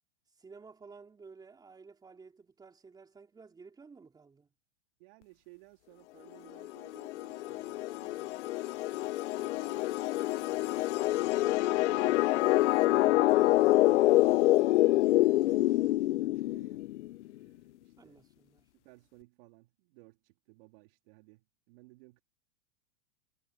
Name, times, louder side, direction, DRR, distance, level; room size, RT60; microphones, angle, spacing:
voice 1, 0.4-4.5 18.0-18.7, right 4 dB, 10° right, 3.7 m, -53 dB
voice 2, 5.0-8.3 9.3-16.8 17.4-18.2 18.7-22.2, right 24 dB, 55° right, 3.5 m, -60 dB
sound 1, 6.6-17.1, left 16 dB, 85° left, 0.5 m, -26 dB
supercardioid pair, 140°, 35 cm